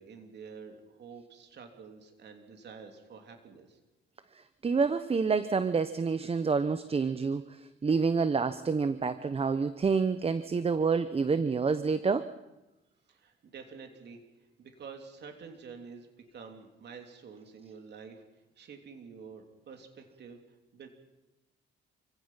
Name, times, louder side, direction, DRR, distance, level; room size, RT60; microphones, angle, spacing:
voice 1, 0.0-3.8 13.1-14.2 14.6-18.2 18.6-20.4 20.7-20.9, right 5 dB, 60° right, 4 dB, 3.2 m, -48 dB
voice 2, 4.6-12.3, right 5 dB, 30° right, 12 dB, 0.9 m, -28 dB
28.0 x 16.5 x 5.7 m, 1.0 s
cardioid pair, 90°, 20 cm